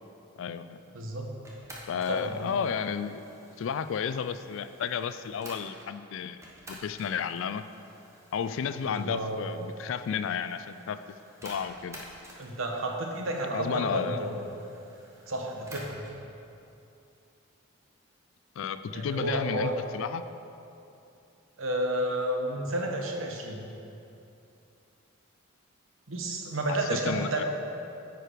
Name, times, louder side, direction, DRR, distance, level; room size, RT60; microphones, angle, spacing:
voice 1, 0.4-0.8 1.9-3.2 3.6-6.4 6.7-7.6 8.3-11.0 11.4-12.1 13.5-14.3 18.6-20.2 26.7-27.4, left 7 dB, 65° left, 12 dB, 0.3 m, -32 dB
voice 2, 0.9-1.3 2.1-2.5 8.8-9.4 12.4-14.5 15.3-16.1 18.9-19.7 21.6-23.6 26.1-27.4, right 1 dB, 70° right, 2 dB, 0.9 m, -31 dB
sound 1, 1.4-5.9 6.4-16.2, right 1 dB, 15° right, 0.9 m, -51 dB
9.0 x 4.7 x 5.1 m, 2.7 s
head